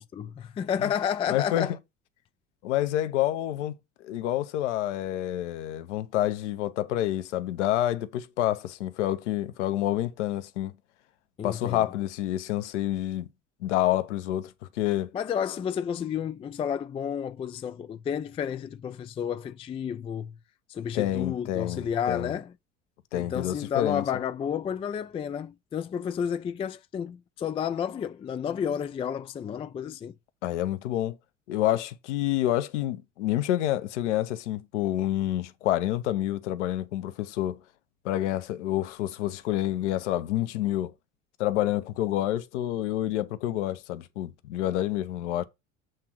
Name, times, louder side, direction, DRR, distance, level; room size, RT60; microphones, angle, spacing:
voice 1, 0.0-1.8 11.4-11.8 15.1-20.3 20.7-22.5 23.1-30.1, left 8 dB, 15° left, 0.4 m, -31 dB
voice 2, 1.3-1.7 2.6-3.8 4.0-10.7 11.4-13.3 13.6-15.1 20.9-22.3 23.1-24.0 30.4-31.2 31.5-37.6 38.0-40.9 41.4-45.4, left 13 dB, 65° left, 0.9 m, -28 dB
7.7 x 3.6 x 6.0 m
figure-of-eight pair, 70°, 39 cm